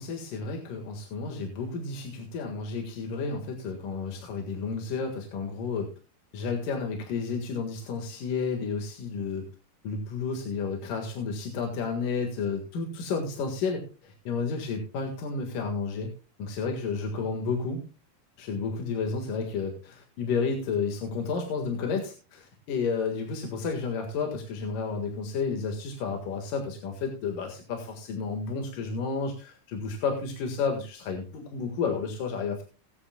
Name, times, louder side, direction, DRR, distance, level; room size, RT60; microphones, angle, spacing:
voice 1, 0.0-5.9 6.3-9.4 9.8-16.1 16.4-17.8 18.4-32.6, left 5 dB, 65° left, 3 dB, 3.2 m, -31 dB
18.5 x 10.0 x 2.3 m, 0.33 s
omnidirectional pair, 4.1 m